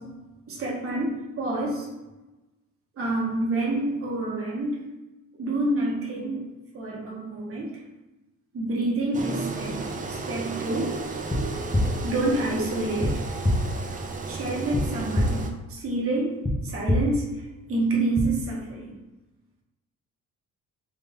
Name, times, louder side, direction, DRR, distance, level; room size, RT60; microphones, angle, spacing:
voice 1, 0.5-1.8 3.0-4.8 5.4-6.5 6.7-7.8 8.5-10.9 12.0-13.2 14.3-17.4 17.7-19.0, right 2 dB, 45° right, -3 dB, 1.1 m, -28 dB
Engine, 9.1-15.5, right 3 dB, 25° right, 0.4 m, -33 dB
sound 1, 11.3-11.4 11.7-11.8 13.0-13.1 13.4-13.5 14.7-14.8 15.1-15.2 16.4-16.5 16.9-17.0 18.1-18.2, left 1 dB, 10° left, 0.7 m, -22 dB
3.5 x 2.7 x 3.6 m, 1.1 s
cardioid pair, 100°, 31 cm